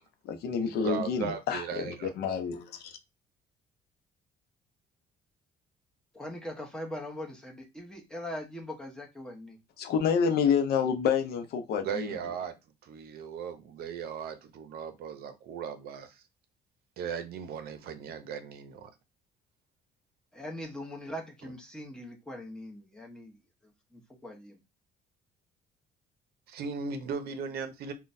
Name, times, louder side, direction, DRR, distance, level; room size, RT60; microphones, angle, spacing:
voice 1, 0.2-3.0 9.8-12.2, left 7 dB, 70° left, 0.7 m, -28 dB
voice 2, 0.8-2.1 11.8-12.6 12.8-16.2 17.0-18.9 26.5-27.9, right 6 dB, 65° right, 0.7 m, -37 dB
voice 3, 6.1-9.6 20.3-24.6, left 1 dB, 5° left, 1.0 m, -41 dB
3.8 x 2.3 x 2.6 m
cardioid pair, 110°, 17 cm